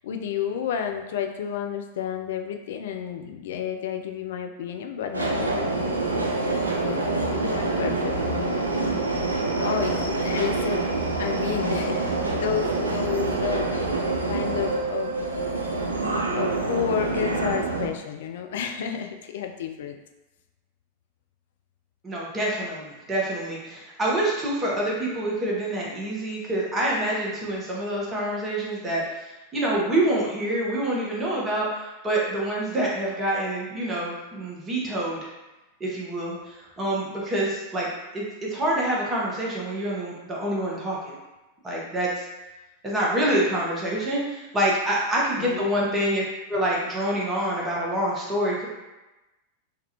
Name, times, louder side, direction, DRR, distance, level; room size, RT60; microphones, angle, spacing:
voice 1, 0.0-6.5 6.8-8.7 9.5-14.0 14.3-15.2 16.3-20.0 45.4-45.7, left 8 dB, 55° left, 5 dB, 0.3 m, -31 dB
Subway metro underground, 5.1-17.9, right 2 dB, 80° right, 0.4 m, -26 dB
voice 2, 22.0-35.3 35.8-37.9 38.1-41.2 41.6-42.2 42.8-46.2 46.5-48.7, right 1 dB, 20° right, -5 dB, 1.0 m, -26 dB
3.6 x 2.3 x 2.9 m, 1.1 s
figure-of-eight pair, 90°, 0 cm